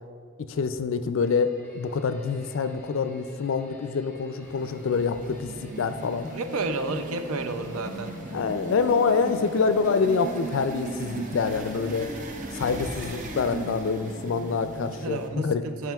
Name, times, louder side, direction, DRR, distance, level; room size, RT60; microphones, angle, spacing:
voice 1, 0.4-6.3 8.3-12.1 12.5-15.6, left 5 dB, 65° left, 10 dB, 0.3 m, -26 dB
sound 1, 1.2-14.4, equal, 10° left, 1.1 m, -47 dB
sound 2, 4.4-15.3, right 3 dB, 35° right, 0.5 m, -38 dB
voice 2, 6.3-8.2 15.0-15.9, right 3 dB, 85° right, 7 dB, 0.5 m, -31 dB
13.0 x 4.7 x 2.3 m, 2.1 s
head